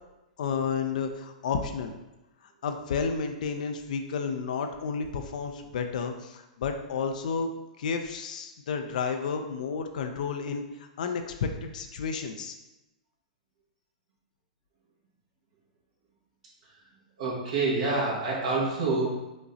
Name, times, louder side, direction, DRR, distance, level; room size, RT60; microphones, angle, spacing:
voice 1, 0.4-1.9 2.6-7.5 7.8-12.5, left 5 dB, 70° left, 5 dB, 0.4 m, -31 dB
voice 2, 17.2-19.2, right 3 dB, 70° right, -6 dB, 1.3 m, -27 dB
5.0 x 3.8 x 2.7 m, 0.98 s
hypercardioid pair, 120°, 4 cm